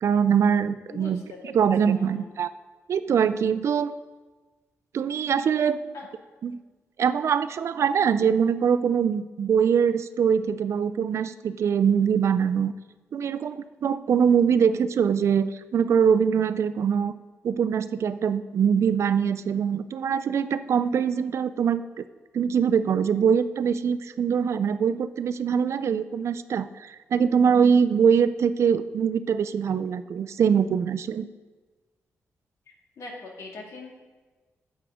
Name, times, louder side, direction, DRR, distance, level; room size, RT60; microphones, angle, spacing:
voice 1, 0.0-2.5 2.9-3.9 4.9-5.8 6.4-6.6 7.0-12.7 13.1-17.1 17.4-22.0 22.3-31.3, right 7 dB, 65° right, 13 dB, 0.4 m, -23 dB
voice 2, 0.9-1.6 1.9-2.3 5.9-6.1 33.0-34.0, left 3 dB, 75° left, 0 dB, 2.1 m, -41 dB
11.5 x 8.1 x 3.7 m, 1.3 s
cardioid pair, 90°, 5 cm